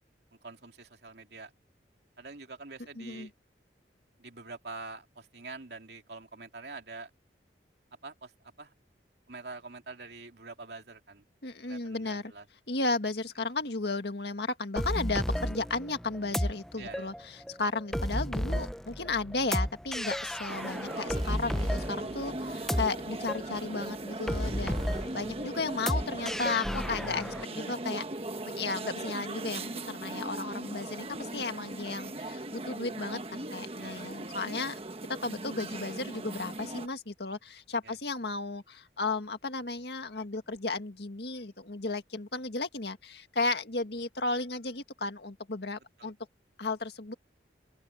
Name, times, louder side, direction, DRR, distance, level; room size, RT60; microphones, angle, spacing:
voice 1, 0.4-1.5 2.2-3.3 4.2-7.1 8.0-8.3 8.6-8.7 9.3-11.2 11.7-12.4 16.8-17.1 22.5-22.6 27.3-27.5 33.8-34.0 37.8-37.9 46.0-46.1, right 3 dB, 65° right, 2.8 m, -45 dB
voice 2, 3.0-3.3 11.4-12.3 12.7-24.8 25.1-28.0 28.5-34.8 35.2-46.2 46.6-47.1, left 3 dB, 70° left, 1.9 m, -34 dB
sound 1, 14.8-27.4, equal, 5° left, 0.7 m, -33 dB
sound 2, 20.5-36.9, right 2 dB, 35° right, 1.3 m, -39 dB
open air
head